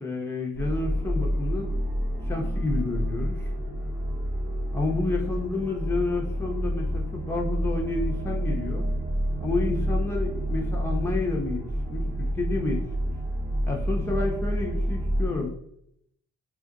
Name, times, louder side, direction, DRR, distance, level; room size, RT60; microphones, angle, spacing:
voice 1, 0.0-1.7 2.3-3.5 4.7-8.9 9.4-11.6 11.9-12.0 12.3-12.8 13.7-15.5, left 3 dB, 5° left, -1 dB, 0.7 m, -30 dB
sound 1, 0.5-15.4, equal, 70° right, 1.2 m, -28 dB
2.8 x 2.4 x 2.6 m, 0.72 s
supercardioid pair, 45°, 36 cm